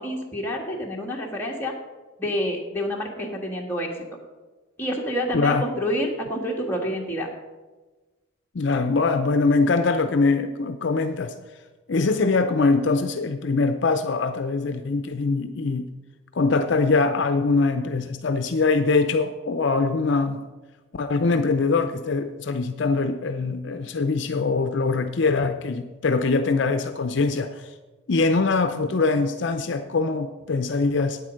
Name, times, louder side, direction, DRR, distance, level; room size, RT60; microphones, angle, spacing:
voice 1, 0.0-1.7 2.2-3.9 4.8-7.3, equal, 10° left, -2 dB, 1.5 m, -28 dB
voice 2, 5.3-5.6 8.5-11.3 11.9-15.9 16.3-20.4 20.9-27.7 28.1-31.2, left 3 dB, 60° left, 8 dB, 0.5 m, -23 dB
9.1 x 8.2 x 6.3 m, 1.2 s
head